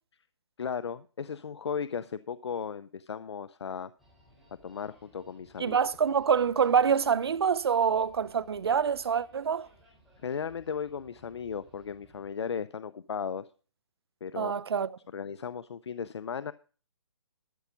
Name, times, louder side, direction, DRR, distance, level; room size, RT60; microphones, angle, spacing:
voice 1, 0.6-3.9 4.6-5.8 10.2-13.5 14.2-14.5 15.1-16.5, left 6 dB, 70° left, 0.6 m, -36 dB
sound 1, 4.0-12.3, equal, ahead, 3.8 m, -61 dB
voice 2, 5.6-9.7 14.4-14.9, right 7 dB, 60° right, 0.7 m, -26 dB
13.0 x 7.1 x 5.1 m
hypercardioid pair, 165°, 15 cm